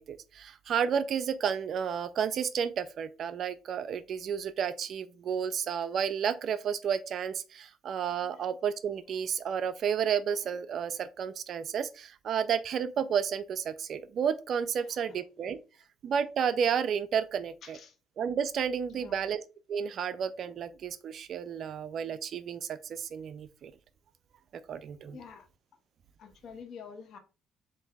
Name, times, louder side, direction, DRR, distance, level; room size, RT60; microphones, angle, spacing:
voice 1, 0.0-15.6 16.0-17.8 18.2-19.4 19.7-23.7 24.7-25.2, right 7 dB, 55° right, 0.3 m, -31 dB
voice 2, 14.8-15.2 17.6-18.0 18.9-19.2 25.1-25.5 26.2-27.2, left 6 dB, 60° left, 0.9 m, -48 dB
6.9 x 2.6 x 2.3 m
cardioid pair, 90°, 0 cm